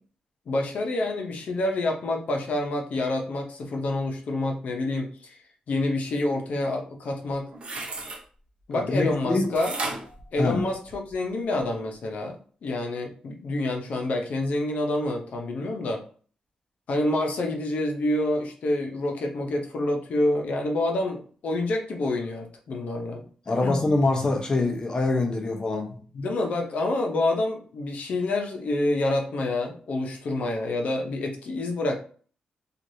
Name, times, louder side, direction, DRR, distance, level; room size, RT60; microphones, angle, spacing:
voice 1, 0.5-5.4 5.7-7.5 8.7-9.7 10.3-12.4 12.6-16.0 16.9-23.2 23.6-23.8 26.1-32.0, left 2 dB, 70° left, 2 dB, 0.7 m, -27 dB
sound 1, 7.3-8.2 9.6-11.1 11.6-11.7, right 3 dB, 50° right, 0.7 m, -34 dB
voice 2, 8.7-9.5 10.4-10.6 23.5-26.0, left 2 dB, 30° left, 3 dB, 0.6 m, -24 dB
3.2 x 2.4 x 2.7 m, 0.43 s
wide cardioid pair, 130°, 3 cm